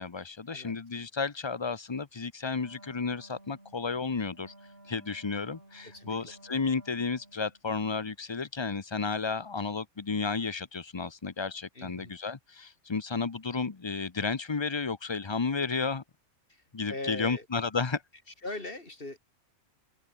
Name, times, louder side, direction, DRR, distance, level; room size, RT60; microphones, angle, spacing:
voice 1, 0.0-4.5 4.9-16.0 16.7-18.0, left 4 dB, 25° left, 0.8 m, -32 dB
Wind instrument woodwind instrument, 2.5-7.6, right 1 dB, 50° right, 6.3 m, -55 dB
voice 2, 5.8-6.3 11.7-12.1 16.5-16.6 16.9-17.5 18.4-19.2, left 2 dB, 45° left, 4.1 m, -40 dB
omnidirectional pair, 1.3 m